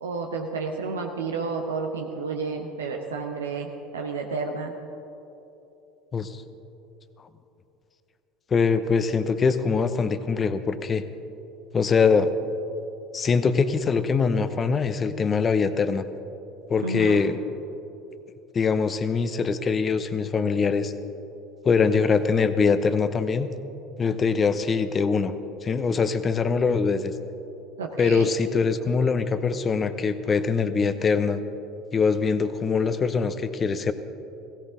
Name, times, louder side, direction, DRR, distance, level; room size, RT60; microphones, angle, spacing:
voice 1, 0.0-3.7 3.9-4.7 16.8-17.2 27.8-28.3, right 4 dB, 80° right, 2 dB, 0.8 m, -31 dB
voice 2, 8.5-11.0 11.7-12.3 13.1-16.0 16.7-17.4 18.5-20.9 21.6-23.5 24.0-25.3 25.6-27.1 28.0-31.4 31.9-33.9, left 5 dB, 30° left, 12 dB, 0.8 m, -23 dB
16.5 x 16.0 x 3.8 m, 2.9 s
hypercardioid pair, 70°, 0 cm